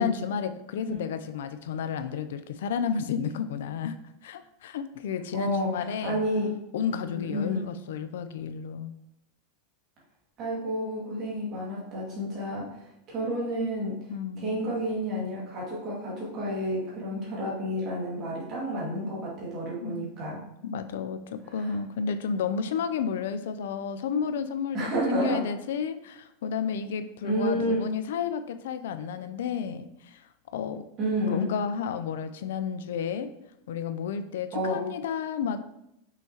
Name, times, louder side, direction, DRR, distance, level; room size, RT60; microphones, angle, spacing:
voice 1, 0.0-4.0 4.2-6.2 6.7-8.9 14.1-14.7 19.8-20.1 20.6-30.2 30.5-30.9 31.3-33.3 33.7-35.6, left 7 dB, 85° left, 10 dB, 0.5 m, -32 dB
voice 2, 5.3-6.5 7.0-7.7 10.4-14.0 14.4-20.4 21.5-21.8 24.7-25.5 27.2-27.9 31.0-31.5 34.5-34.8, equal, 30° right, -5 dB, 2.1 m, -30 dB
5.9 x 5.6 x 2.9 m, 0.82 s
supercardioid pair, 175°, 0 cm